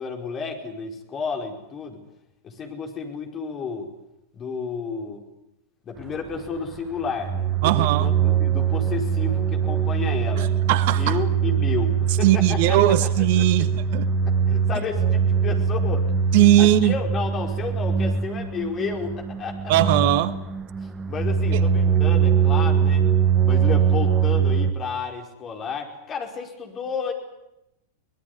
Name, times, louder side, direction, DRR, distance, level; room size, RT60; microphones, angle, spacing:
voice 1, 0.0-2.0 2.4-3.9 4.3-5.2 5.8-10.5 11.0-13.7 14.2-16.1 16.6-19.7 20.8-23.1 23.4-27.1, left 5 dB, 25° left, 5.0 m, -32 dB
sound 1, 6.0-24.7, right 7 dB, 20° right, 1.4 m, -22 dB
voice 2, 7.6-8.1 10.7-11.2 12.2-14.1 16.3-16.9 19.7-20.3 21.5-21.6, right 14 dB, 50° right, 1.0 m, -19 dB
24.5 x 19.5 x 9.8 m
figure-of-eight pair, 90°, 0 cm